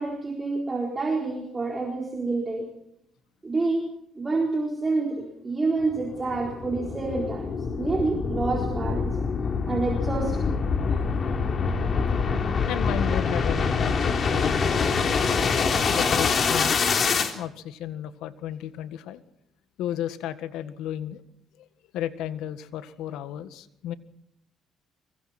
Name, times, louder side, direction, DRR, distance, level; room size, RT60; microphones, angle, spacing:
voice 1, 0.0-2.7 3.4-3.9 4.1-7.5 7.8-9.2 9.7-10.5, right 3 dB, 20° right, 0 dB, 4.2 m, -28 dB
sound 1, 5.8-17.3, left 5 dB, 40° left, 3.3 m, -25 dB
voice 2, 12.7-15.2 15.9-16.8 17.3-19.2 19.8-21.2 21.6-21.7 21.9-23.9, left 11 dB, 85° left, 12 dB, 1.7 m, -33 dB
25.0 x 24.0 x 4.4 m, 0.78 s
cardioid pair, 115°, 0 cm